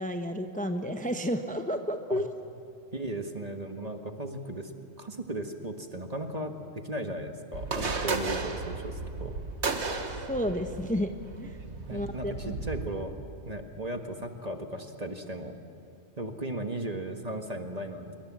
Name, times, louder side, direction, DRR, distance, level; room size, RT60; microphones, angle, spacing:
voice 1, 0.0-2.3 10.3-11.1 11.4-11.6 11.9-12.6, equal, 5° left, 6 dB, 1.0 m, -31 dB
voice 2, 2.9-4.7 5.0-9.3 11.9-13.2 13.4-15.6 16.2-18.2, right 1 dB, 35° right, 6 dB, 1.6 m, -36 dB
sound 1, 7.5-12.9, right 3 dB, 75° right, 1.9 m, -34 dB
26.5 x 23.0 x 7.5 m, 2.5 s
omnidirectional pair, 1.2 m